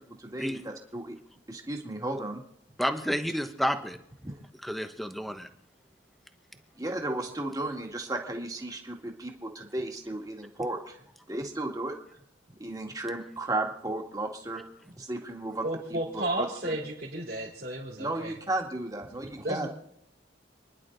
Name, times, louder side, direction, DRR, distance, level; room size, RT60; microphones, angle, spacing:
voice 1, 0.2-1.2 1.5-2.4 4.2-4.4 6.8-11.0 11.3-11.9 12.6-14.6 15.0-15.6 16.4-16.7 18.0-19.7, right 2 dB, 20° right, 2 dB, 2.1 m, -34 dB
voice 2, 2.8-4.0 4.6-5.5, equal, ahead, 7 dB, 1.0 m, -30 dB
voice 3, 15.6-18.3 19.4-19.7, right 1 dB, 55° right, -5 dB, 3.7 m, -33 dB
28.5 x 11.0 x 4.0 m, 0.72 s
head